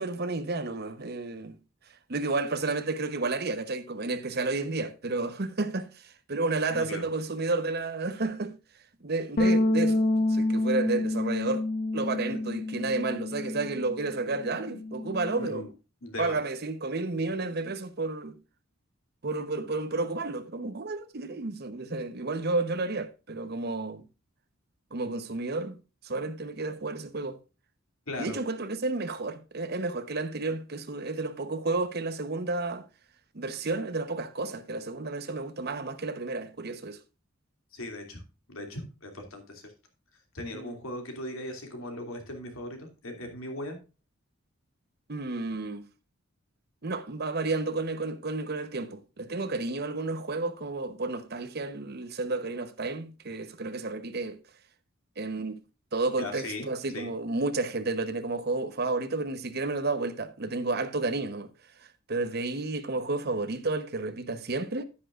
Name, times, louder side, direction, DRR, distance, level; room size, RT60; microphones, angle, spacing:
voice 1, 0.0-1.6 2.1-8.5 9.0-11.6 11.9-15.7 16.2-18.4 19.2-24.0 24.9-25.8 26.0-27.4 28.2-32.8 33.3-37.0 40.5-40.8 45.1-45.8 46.8-54.4 55.2-55.6 55.9-61.5 62.1-64.8, right 3 dB, 50° right, 0.9 m, -31 dB
sound 1, 9.4-13.9 14.2-15.6, left 2 dB, 45° left, 0.8 m, -28 dB
voice 2, 16.0-16.4 28.1-28.4 37.7-38.2 38.5-39.7 40.3-43.8 56.2-56.7 56.9-57.1, left 1 dB, 80° left, 2.6 m, -38 dB
10.0 x 9.9 x 2.4 m
head